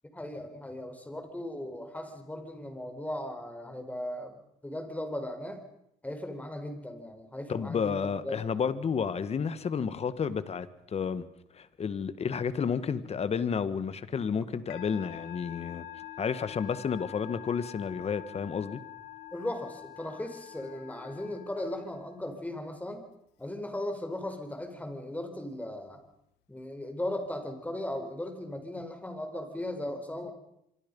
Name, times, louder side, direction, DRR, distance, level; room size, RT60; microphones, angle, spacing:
voice 1, 0.1-4.4 4.6-5.6 6.0-8.4 19.3-23.1 23.4-26.0 26.5-30.3, left 1 dB, 10° left, 4.7 m, -37 dB
voice 2, 7.5-11.2 11.5-15.8 16.2-18.8, left 6 dB, 40° left, 1.8 m, -31 dB
Musical instrument, 14.7-22.3, left 13 dB, 85° left, 1.8 m, -46 dB
26.0 x 24.5 x 5.6 m
cardioid pair, 110°, 17 cm